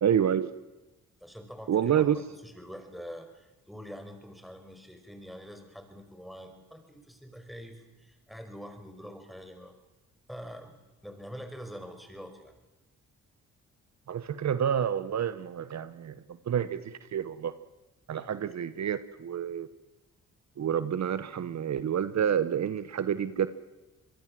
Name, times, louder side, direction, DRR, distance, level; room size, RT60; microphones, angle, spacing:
voice 1, 0.0-0.5 1.7-2.2 14.1-16.1 16.4-17.5 18.1-19.7 20.6-23.5, right 9 dB, 60° right, 13 dB, 1.1 m, -28 dB
voice 2, 1.2-9.8 10.3-12.6 18.2-18.3, equal, ahead, 5 dB, 5.7 m, -45 dB
25.5 x 22.0 x 7.7 m, 1.1 s
cardioid pair, 85°, 31 cm